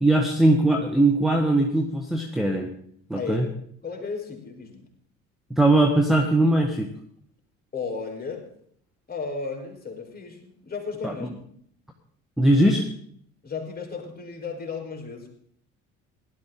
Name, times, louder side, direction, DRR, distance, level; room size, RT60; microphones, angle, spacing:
voice 1, 0.0-2.7 3.1-3.5 5.5-6.9 11.0-11.3 12.4-12.8, right 1 dB, ahead, 2 dB, 1.5 m, -20 dB
voice 2, 3.1-3.5 3.8-4.9 7.7-8.5 9.1-11.3 13.4-15.3, left 5 dB, 20° left, 2 dB, 4.1 m, -34 dB
17.0 x 11.5 x 3.8 m, 0.64 s
figure-of-eight pair, 55°, 40 cm